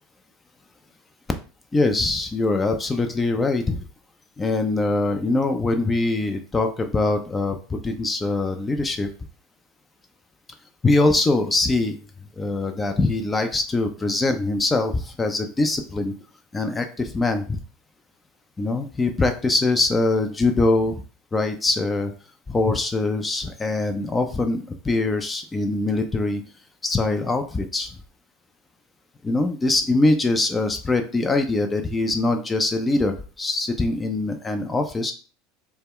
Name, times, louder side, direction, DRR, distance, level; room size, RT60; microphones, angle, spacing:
voice 1, 1.7-3.9 4.4-9.1 10.8-12.0 12.4-16.1 16.5-17.6 18.6-21.0 21.3-22.1 22.5-26.4 26.8-28.0 29.2-35.1, left 2 dB, 20° left, 6 dB, 0.4 m, -23 dB
2.1 x 2.1 x 3.5 m, 0.38 s
hypercardioid pair, 85°, 0 cm